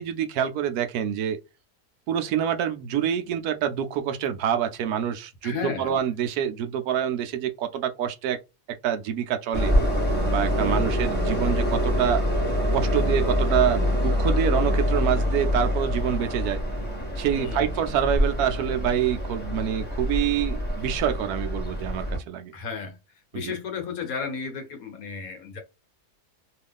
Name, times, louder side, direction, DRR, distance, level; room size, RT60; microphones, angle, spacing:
voice 1, 0.0-1.4 2.1-8.4 8.8-9.7 10.3-12.2 12.7-16.6 17.2-22.5 23.3-23.6, right 9 dB, 75° right, 1.0 m, -26 dB
voice 2, 5.4-6.0 10.6-10.9 17.3-17.7 22.5-23.0 23.3-25.6, left 5 dB, 65° left, 1.3 m, -33 dB
Train, 9.5-22.2, equal, 10° left, 1.0 m, -25 dB
3.0 x 2.4 x 3.4 m
omnidirectional pair, 1.7 m